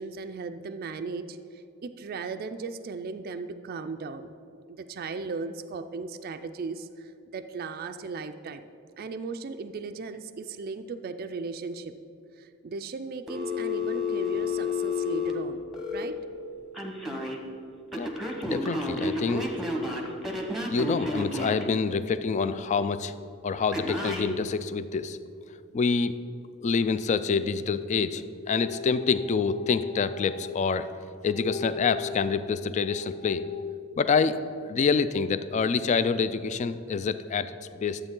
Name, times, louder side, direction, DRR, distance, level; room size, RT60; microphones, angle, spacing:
voice 1, 0.0-4.3 4.7-8.7 9.0-11.9 12.4-15.6 15.9-16.2, right 4 dB, 45° right, 8 dB, 0.4 m, -37 dB
Telephone, 13.3-16.0 16.7-17.4 17.9-21.7 23.7-24.3, left 3 dB, ahead, 0.9 m, -30 dB
voice 2, 18.4-19.5 20.7-23.1 23.4-25.2 25.7-26.1 26.6-30.9 31.2-34.4 34.6-38.0, left 5 dB, 35° left, 13 dB, 0.3 m, -27 dB
12.0 x 8.0 x 3.8 m, 2.5 s
head